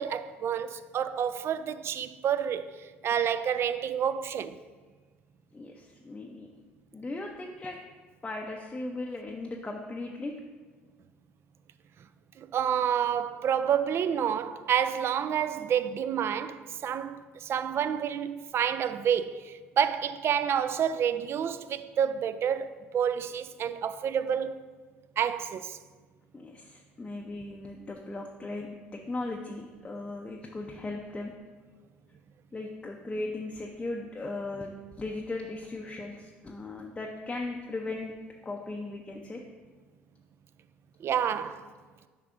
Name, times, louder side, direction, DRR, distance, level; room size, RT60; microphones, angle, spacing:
voice 1, 0.0-2.7 3.0-4.6 12.4-24.6 25.2-25.8 41.0-41.6, right 8 dB, 45° right, 0.3 m, -29 dB
voice 2, 5.5-6.5 6.9-7.8 8.2-10.3 26.3-28.8 29.1-31.3 32.5-34.7 35.0-38.1 38.4-39.4, left 2 dB, 20° left, 0.5 m, -37 dB
8.1 x 4.9 x 2.5 m
hypercardioid pair, 60°, 6 cm